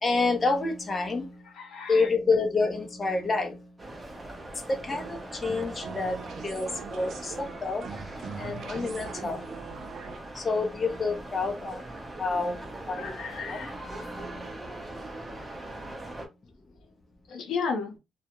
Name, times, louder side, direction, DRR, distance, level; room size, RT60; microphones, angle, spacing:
voice 1, 0.0-1.4 1.9-3.7 4.7-7.9 8.4-9.4 10.4-11.8 12.2-12.6 12.9-13.2 13.5-14.5, left 3 dB, 30° left, 0.5 m, -28 dB
voice 2, 1.6-2.1 12.9-13.7 17.3-18.0, left 5 dB, 75° left, 0.7 m, -33 dB
sound 1, 3.8-16.3, right 1 dB, 20° right, 0.7 m, -41 dB
sound 2, 4.9-10.2, right 6 dB, 65° right, 0.4 m, -42 dB
2.2 x 2.0 x 2.9 m
cardioid pair, 90°, 0 cm